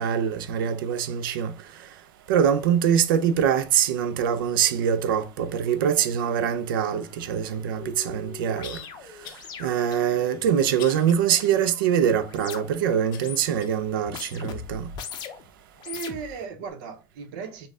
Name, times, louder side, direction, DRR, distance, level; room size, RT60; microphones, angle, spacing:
voice 1, 0.0-1.5 2.3-8.8 9.6-14.9, right 8 dB, 90° right, 0.6 m, -24 dB
voice 2, 5.9-6.9 15.8-17.7, right 6 dB, 70° right, 0.9 m, -38 dB
sound 1, 6.8-6.9 7.3-12.9 13.2-13.7 14.0-15.5 15.8-16.7, left 7 dB, 40° left, 0.7 m, -41 dB
sound 2, 7.6-7.7 8.6-8.9 9.2-9.5 9.9-11.5 12.0-12.1 13.1-13.9 14.4-14.5 15.3-15.4, left 9 dB, 75° left, 0.7 m, -44 dB
5.3 x 2.3 x 3.6 m
supercardioid pair, 130°, 11 cm